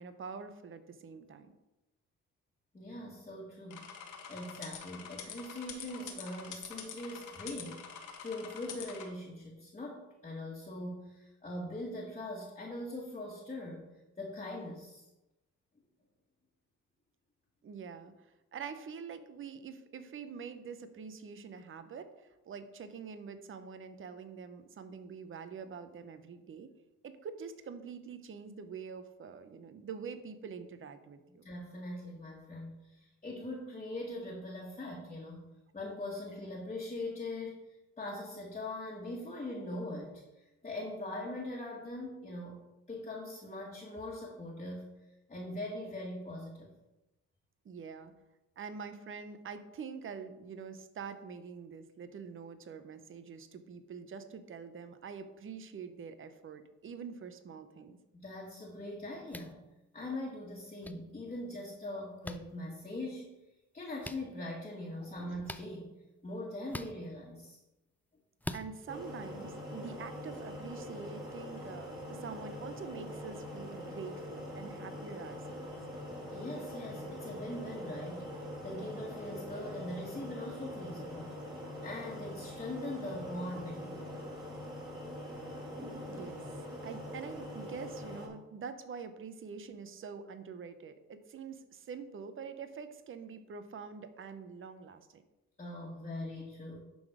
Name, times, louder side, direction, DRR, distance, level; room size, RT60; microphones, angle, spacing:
voice 1, 0.0-1.5 17.6-26.7 27.0-31.5 47.6-48.1 48.6-58.0 65.2-65.3 68.5-75.6 86.1-86.5 86.8-95.2, right 6 dB, 45° right, 10 dB, 0.8 m, -45 dB
voice 2, 2.7-13.9 14.2-15.1 31.4-35.4 35.7-37.5 38.0-42.6 42.9-44.9 45.3-46.7 58.1-59.6 59.9-63.3 63.7-65.9 66.2-67.6 76.3-78.3 78.6-81.3 81.8-84.3 95.6-96.8, left 1 dB, 25° left, -5 dB, 1.6 m, -41 dB
sound 1, 3.7-9.1, left 8 dB, 85° left, 1.4 m, -46 dB
sound 2, 59.3-59.5 60.8-60.9 62.2-62.4 64.0-64.2 65.4-65.7 66.7-66.9 68.4-68.6, left 1 dB, 5° left, 0.4 m, -41 dB
sound 3, 68.9-88.3, equal, 15° right, 2.9 m, -43 dB
11.0 x 3.9 x 5.0 m, 0.99 s
cardioid pair, 90°, 30 cm